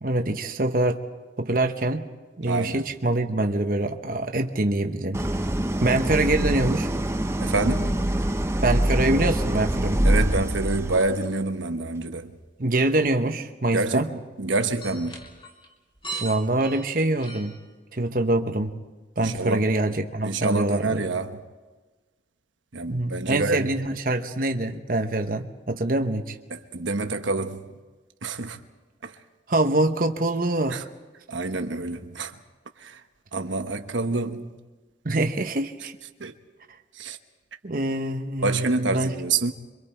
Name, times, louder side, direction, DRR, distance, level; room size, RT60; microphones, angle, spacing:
voice 1, 0.0-1.0 1.4-2.1 2.4-5.2 5.8-6.9 8.6-10.0 12.6-14.1 16.2-17.5 17.9-18.8 19.2-21.0 22.9-26.4 29.5-30.8 35.0-35.9 37.6-39.1, right 2 dB, 50° right, 1.0 m, -24 dB
voice 2, 2.5-2.8 7.4-8.0 10.0-12.4 13.7-15.2 19.2-19.7 20.2-21.4 22.7-23.7 26.5-27.8 28.2-28.6 29.0-29.2 30.7-30.8 31.3-32.4 32.8-33.0 33.3-34.6 36.2-36.4 36.9-37.2 38.4-39.5, right 3 dB, 90° right, 1.2 m, -27 dB
Idling, 5.1-11.2, right 1 dB, 15° right, 0.6 m, -24 dB
sound 1, 12.4-12.5 13.0-13.1 14.7-17.6, right 3 dB, 25° left, 3.1 m, -38 dB
27.5 x 24.5 x 4.5 m
head